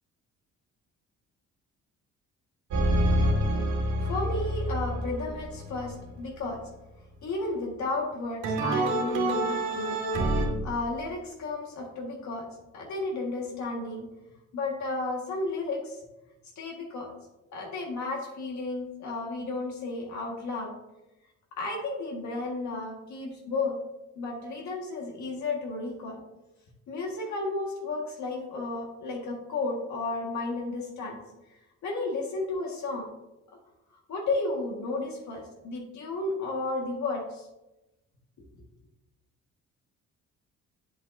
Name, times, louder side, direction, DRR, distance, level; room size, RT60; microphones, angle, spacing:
sound 1, 2.7-6.1 8.4-10.5, right 1 dB, 80° right, 1.9 m, -27 dB
voice 1, 4.0-6.6 7.2-10.0 10.4-12.5 12.7-14.1 14.5-16.0 16.6-17.1 17.5-20.7 21.6-23.8 24.2-26.2 26.9-31.2 31.8-33.1 34.1-37.5 38.6-38.7, left 3 dB, 70° left, -1 dB, 1.7 m, -33 dB
8.2 x 7.4 x 2.6 m, 0.98 s
cardioid pair, 90°, 30 cm